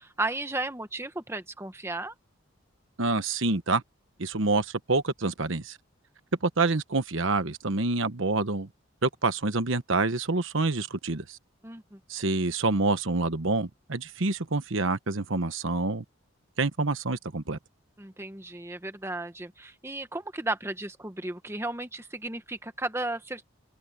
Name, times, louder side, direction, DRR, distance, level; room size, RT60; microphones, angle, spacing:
voice 1, 0.0-2.1 11.6-12.0 18.0-23.4, right 2 dB, 10° right, 1.1 m, -34 dB
voice 2, 3.0-3.8 4.2-5.8 6.4-8.7 9.0-11.4 12.1-16.0 16.6-17.6, right 3 dB, 75° right, 1.2 m, -27 dB
head